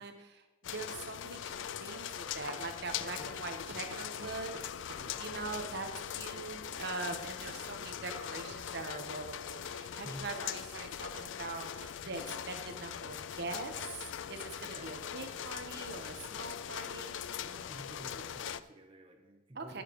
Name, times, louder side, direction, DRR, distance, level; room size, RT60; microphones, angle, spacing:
voice 1, 0.0-17.2 19.6-19.8, right 3 dB, 55° right, 5 dB, 1.0 m, -43 dB
sound 1, 0.6-18.6, left 9 dB, 70° left, 0.4 m, -41 dB
Hammer, 3.9-5.2 7.5-8.8 11.1-12.4, right 4 dB, 75° right, 0.7 m, -54 dB
voice 2, 5.0-5.3 10.0-10.3 14.7-15.0 17.4-19.8, equal, 25° right, 2 dB, 0.9 m, -51 dB
11.5 x 9.3 x 3.1 m, 1.0 s
head